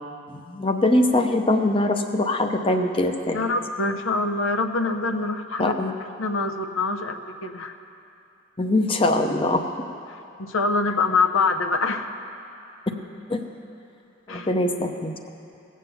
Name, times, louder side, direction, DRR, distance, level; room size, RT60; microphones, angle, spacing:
voice 1, 0.3-3.4 5.6-5.9 8.6-9.6 13.3-13.4 14.3-15.2, left 1 dB, 25° left, 5 dB, 0.7 m, -22 dB
voice 2, 3.3-5.8 6.2-7.7 10.1-12.1 14.3-14.5, left 3 dB, 85° left, 6 dB, 0.8 m, -25 dB
17.0 x 7.4 x 7.0 m, 2.8 s
head